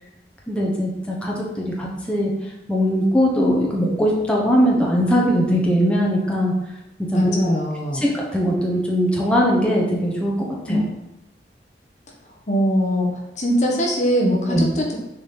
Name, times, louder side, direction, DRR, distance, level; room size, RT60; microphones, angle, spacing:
voice 1, 0.5-2.3 2.7-6.5 7.1-7.5 8.1-10.8 14.5-14.7, equal, 5° left, -4 dB, 1.2 m, -20 dB
voice 2, 7.1-8.1 10.7-10.8 12.5-13.1 13.4-15.0, equal, 40° left, -1 dB, 1.1 m, -21 dB
7.1 x 4.3 x 5.5 m, 0.91 s
head